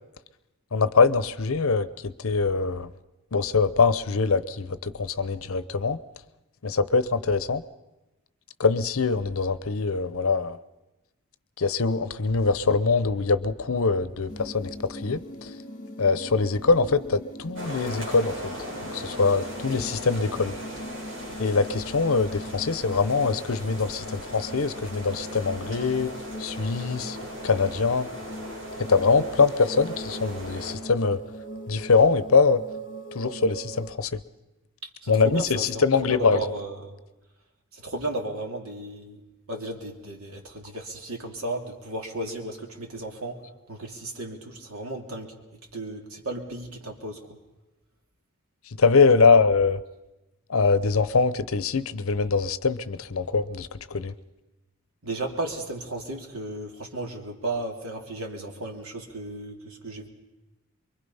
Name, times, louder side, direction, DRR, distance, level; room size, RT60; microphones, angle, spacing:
voice 1, 0.7-2.9 3.3-6.0 6.6-7.6 8.6-10.6 11.6-15.2 16.0-18.3 18.9-20.5 21.4-26.1 26.4-27.2 27.4-28.1 28.9-31.2 31.7-32.6 33.1-34.2 35.1-36.4 48.8-49.8 50.5-54.1, left 4 dB, 75° left, 15 dB, 0.8 m, -23 dB
sound 1, 14.3-33.9, equal, 35° left, 1.7 m, -41 dB
sound 2, 17.6-30.8, equal, 60° right, 7.6 m, -38 dB
voice 2, 35.0-36.9 37.7-39.2 39.5-43.4 43.7-45.3 45.7-47.2 49.1-49.3 55.0-60.1, right 1 dB, 85° right, 2 dB, 2.8 m, -34 dB
24.5 x 23.0 x 5.6 m, 1.0 s
head